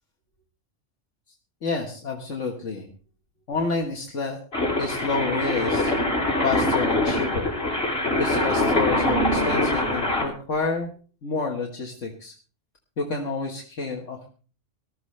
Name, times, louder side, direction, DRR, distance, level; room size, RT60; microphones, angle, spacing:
voice 1, 1.6-2.9 3.5-4.4 4.8-5.9 6.4-7.5 8.2-10.9 11.2-12.3 13.0-14.3, left 3 dB, 75° left, 1 dB, 1.9 m, -29 dB
sound 1, 4.5-10.2, left 1 dB, 55° left, 4.0 m, -23 dB
19.5 x 13.0 x 3.3 m, 0.40 s
omnidirectional pair, 1.3 m